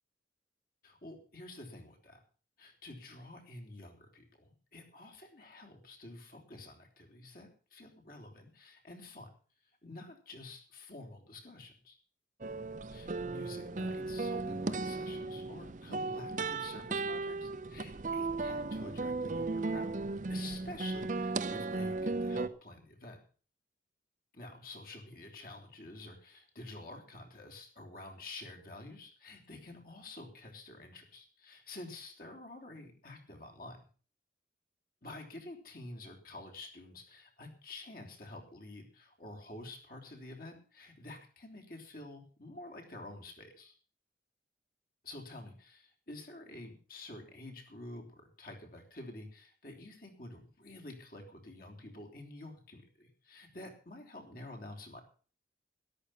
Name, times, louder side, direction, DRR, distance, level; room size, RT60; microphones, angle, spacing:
voice 1, 0.8-2.2 2.6-9.3 9.8-12.0 12.9-19.9 20.3-23.2 24.3-33.8 35.0-43.7 45.0-55.0, left 2 dB, 50° left, 2 dB, 3.4 m, -49 dB
sound 1, 12.4-22.5, right 3 dB, 40° right, 0.6 m, -36 dB
13.0 x 11.5 x 5.8 m, 0.40 s
head